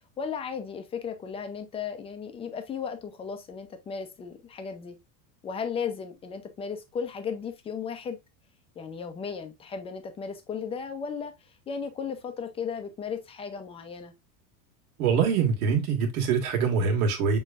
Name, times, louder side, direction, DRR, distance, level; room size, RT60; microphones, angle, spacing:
voice 1, 0.2-5.0 5.4-8.2 8.8-11.3 11.7-14.1, left 6 dB, 15° left, 0.5 m, -35 dB
voice 2, 15.0-17.4, right 6 dB, 85° right, 1.9 m, -24 dB
6.6 x 3.1 x 2.4 m
supercardioid pair, 155°, 44 cm